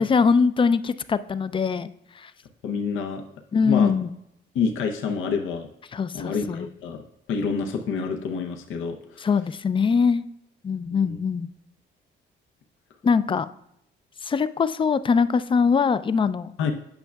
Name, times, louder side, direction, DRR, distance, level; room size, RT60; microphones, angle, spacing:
voice 1, 0.0-1.9 2.2-2.3 3.5-4.1 5.9-6.7 9.2-10.2 10.6-11.5 13.0-13.5 14.2-16.5, left 5 dB, 25° left, 14 dB, 0.3 m, -22 dB
voice 2, 2.6-3.2 3.6-3.9 4.5-5.7 6.1-9.3 10.9-11.2 16.6-16.7, left 5 dB, 80° left, 3 dB, 0.7 m, -28 dB
8.8 x 5.7 x 2.3 m, 0.78 s
cardioid pair, 90°, 20 cm